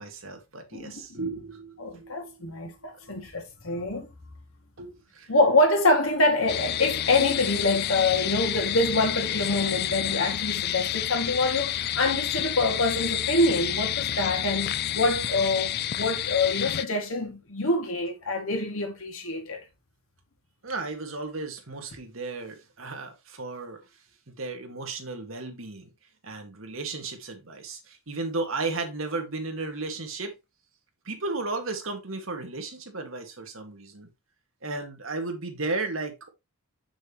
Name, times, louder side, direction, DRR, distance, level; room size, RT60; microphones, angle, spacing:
voice 1, 0.0-2.9 4.8-5.3 20.6-23.8 24.3-25.9 26.2-30.3 31.1-34.1 34.6-36.3, right 3 dB, 75° right, 1.9 m, -34 dB
voice 2, 0.7-1.2 1.8-4.1 5.3-19.6, left 2 dB, 85° left, 2.3 m, -25 dB
sound 1, 6.5-16.8, left 11 dB, 50° left, 0.4 m, -29 dB
7.1 x 6.2 x 3.0 m
head